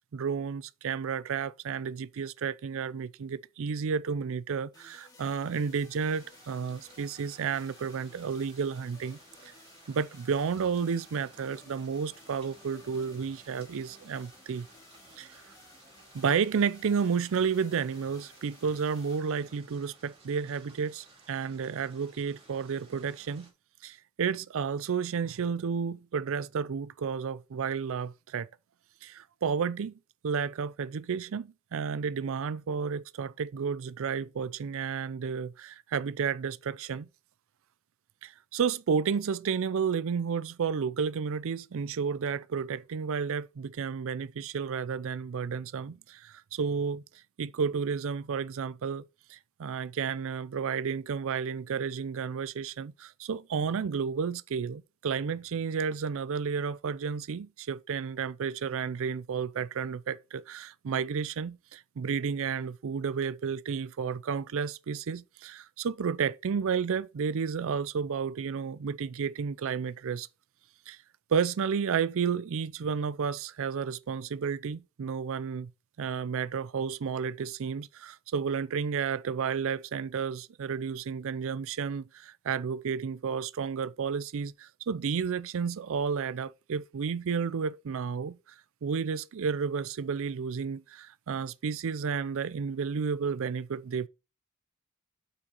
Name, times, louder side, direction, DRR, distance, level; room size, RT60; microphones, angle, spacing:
voice 1, 0.1-9.5 9.9-14.7 15.2-15.4 16.1-23.5 23.8-28.5 29.0-29.9 30.2-37.1 38.2-47.0 47.4-49.0 49.3-70.3 70.9-71.0 71.3-75.7 76.0-88.4 88.8-94.1, right 6 dB, 65° right, 0.4 m, -32 dB
sound 1, 4.7-20.8, left 3 dB, 20° left, 3.5 m, -57 dB
sound 2, 6.0-23.5, right 3 dB, 30° right, 3.2 m, -58 dB
8.0 x 6.2 x 4.4 m
head